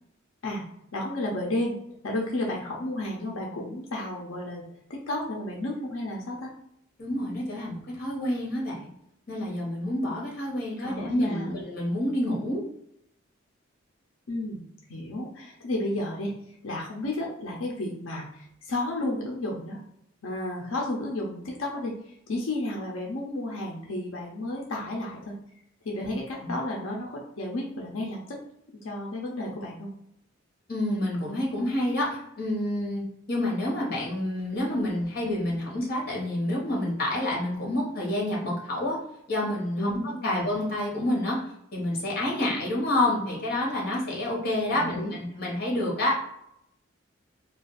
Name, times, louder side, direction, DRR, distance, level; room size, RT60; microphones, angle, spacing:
voice 1, 0.9-1.8 2.0-4.6 4.9-6.5 10.8-11.6 14.3-16.3 16.6-19.8 20.2-25.3 25.8-28.4 28.8-29.9 39.8-40.5 44.7-45.2, left 1 dB, 90° left, -1 dB, 0.6 m, -32 dB
voice 2, 7.0-8.9 9.3-12.6 26.0-26.1 26.4-26.5 30.7-39.0 39.3-41.4 41.7-46.2, left 1 dB, 50° left, -3 dB, 1.1 m, -28 dB
2.5 x 2.3 x 3.9 m, 0.76 s
head